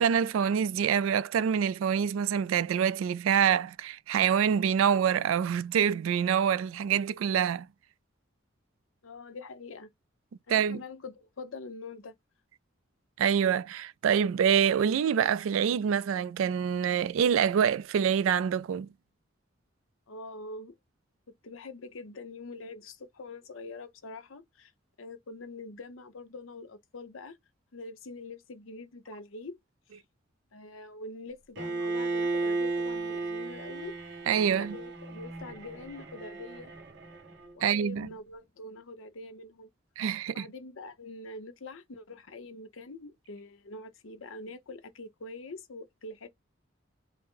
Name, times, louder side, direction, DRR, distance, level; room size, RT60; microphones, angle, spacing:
voice 1, 0.0-7.7 10.5-10.8 13.2-18.9 34.3-34.8 37.6-38.1 40.0-40.5, right 8 dB, 85° right, 0.3 m, -26 dB
voice 2, 9.0-9.9 10.5-12.1 20.1-20.7 21.4-24.7 25.0-27.4 27.7-29.6 30.5-34.0 34.5-36.7 37.5-39.7 40.3-46.3, left 2 dB, 80° left, 0.7 m, -44 dB
Bowed string instrument, 31.6-37.5, right 3 dB, 60° right, 1.4 m, -34 dB
4.1 x 2.0 x 3.8 m
head